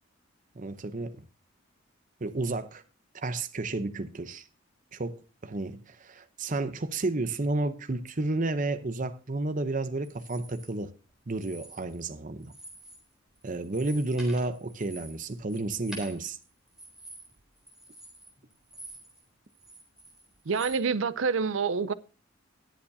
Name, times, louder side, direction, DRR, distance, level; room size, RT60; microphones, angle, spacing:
voice 1, 0.6-1.3 2.2-2.8 3.1-4.5 4.9-10.9 11.3-12.5 13.4-16.4, right 2 dB, 40° right, 0.7 m, -31 dB
sound 1, 10.0-10.7 11.3-12.1 12.4-13.1 13.4-19.2 19.5-20.8, right 1 dB, 5° right, 3.7 m, -48 dB
voice 2, 20.5-21.9, right 5 dB, 70° right, 0.5 m, -27 dB
19.5 x 7.2 x 2.7 m
head